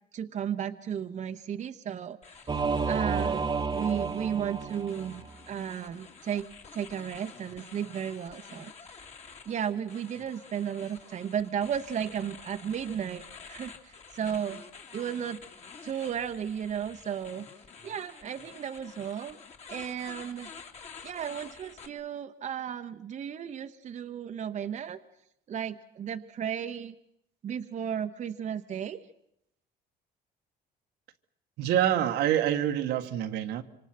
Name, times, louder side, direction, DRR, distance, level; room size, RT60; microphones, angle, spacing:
voice 1, 0.1-2.5 2.8-6.5 6.7-8.7 9.5-14.6 14.9-15.4 15.8-17.5 17.8-19.4 19.7-20.5 21.0-25.0 25.5-26.9 27.4-29.0, right 8 dB, 45° right, 1.0 m, -34 dB
sound 1, 2.2-21.9, left 5 dB, 40° left, 2.7 m, -49 dB
Singing / Musical instrument, 2.5-5.3, right 5 dB, 25° right, 1.3 m, -31 dB
voice 2, 31.6-33.6, right 11 dB, 80° right, 1.6 m, -26 dB
26.5 x 25.5 x 6.0 m
cardioid pair, 110°, 17 cm